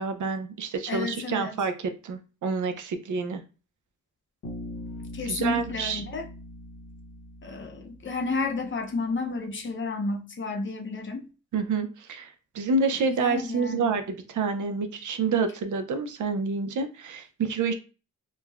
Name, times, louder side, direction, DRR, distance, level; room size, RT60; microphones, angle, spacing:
voice 1, 0.0-3.4 5.3-6.0 11.5-17.7, right 4 dB, 65° right, 0.5 m, -28 dB
voice 2, 0.9-1.6 5.1-6.3 7.4-11.3 12.9-13.9, left 3 dB, 40° left, 0.5 m, -31 dB
Bass guitar, 4.4-8.5, left 1 dB, 65° left, 1.0 m, -41 dB
3.1 x 2.0 x 2.3 m
wide cardioid pair, 120°, 32 cm